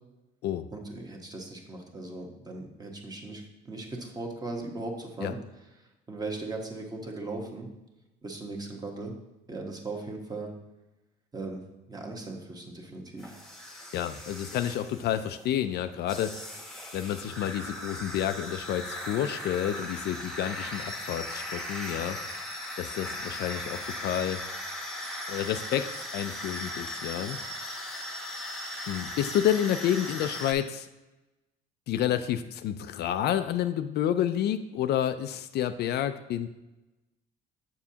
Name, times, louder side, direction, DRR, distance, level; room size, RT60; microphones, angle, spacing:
voice 1, 0.7-5.4 5.8-7.7 8.2-9.2 9.5-10.5 11.3-11.6 11.9-13.4, right 2 dB, 20° right, 1 dB, 1.2 m, -38 dB
sound 1, 13.2-15.5 16.1-30.5, left 1 dB, ahead, 1.0 m, -38 dB
voice 2, 13.9-16.3 16.9-22.4 22.8-24.4 25.3-25.9 26.1-27.4 28.9-30.9 31.9-36.5, left 10 dB, 60° left, 10 dB, 0.4 m, -29 dB
7.2 x 7.0 x 2.8 m, 1.0 s
cardioid pair, 120°, 19 cm